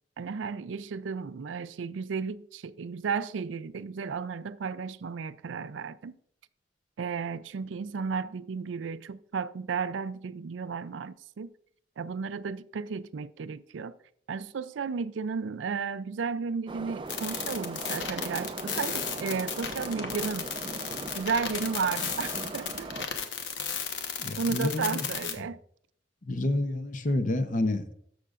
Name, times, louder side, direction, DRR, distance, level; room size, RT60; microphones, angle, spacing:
voice 1, 0.2-6.1 7.0-11.5 12.0-13.9 14.3-20.5 21.1-22.9 24.4-25.6, right 5 dB, 85° right, 0.4 m, -33 dB
Subway metro underground, 16.7-23.1, right 2 dB, 25° right, 0.4 m, -39 dB
sound 1, 17.1-25.3, left 7 dB, 80° left, 1.1 m, -34 dB
voice 2, 24.2-25.0 26.3-27.9, left 2 dB, 45° left, 0.7 m, -29 dB
13.5 x 6.5 x 2.5 m
head